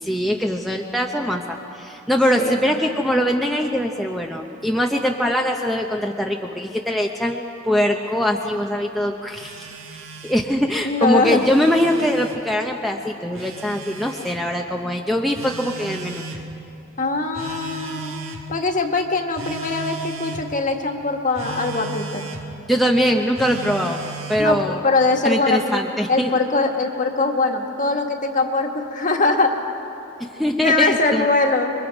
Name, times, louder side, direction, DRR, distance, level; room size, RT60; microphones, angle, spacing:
voice 1, 0.0-9.6 10.2-16.2 22.7-24.0 24.3-24.8 25.2-26.3 30.2-31.3, equal, ahead, 0 dB, 0.7 m, -22 dB
voice 2, 2.3-2.8 10.8-11.4 17.0-18.2 18.5-22.3 24.4-25.8 26.1-29.5 30.6-31.7, left 3 dB, 40° left, 3 dB, 1.6 m, -22 dB
Telephone, 9.3-10.4 11.2-12.4 13.3-14.4 15.3-16.4 17.3-18.5 19.3-20.4 21.3-22.4 23.3-24.5, right 4 dB, 85° right, 1.8 m, -35 dB
28.0 x 22.5 x 5.3 m, 2.9 s
head